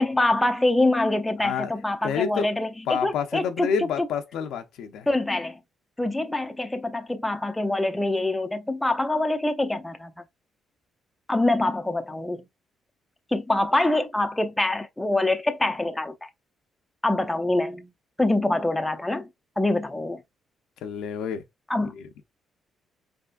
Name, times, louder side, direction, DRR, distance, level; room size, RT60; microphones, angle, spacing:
voice 1, 0.0-3.9 5.1-5.6 6.0-10.1 11.3-12.4 13.3-16.1 17.0-17.9 18.2-19.3 19.6-20.2 21.7-21.9, left 2 dB, 10° left, 0.5 m, -25 dB
voice 2, 1.4-1.7 2.0-2.5 2.9-5.1 20.8-21.4 21.9-22.2, left 7 dB, 85° left, 0.7 m, -29 dB
4.2 x 3.6 x 2.5 m
cardioid pair, 120°, 0 cm